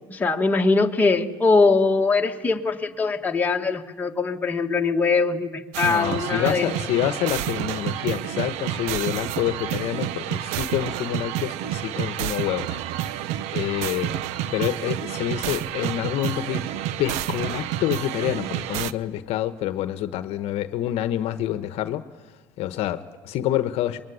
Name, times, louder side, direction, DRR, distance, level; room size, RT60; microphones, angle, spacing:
voice 1, 0.1-6.7, left 4 dB, 15° left, 2 dB, 2.0 m, -22 dB
sound 1, 5.7-18.9, right 12 dB, 75° right, 0.9 m, -29 dB
voice 2, 5.8-13.2 13.5-14.1 14.5-22.0 22.6-24.0, left 13 dB, 65° left, 11 dB, 1.1 m, -27 dB
24.0 x 23.0 x 9.9 m, 1.3 s
cardioid pair, 115°, 11 cm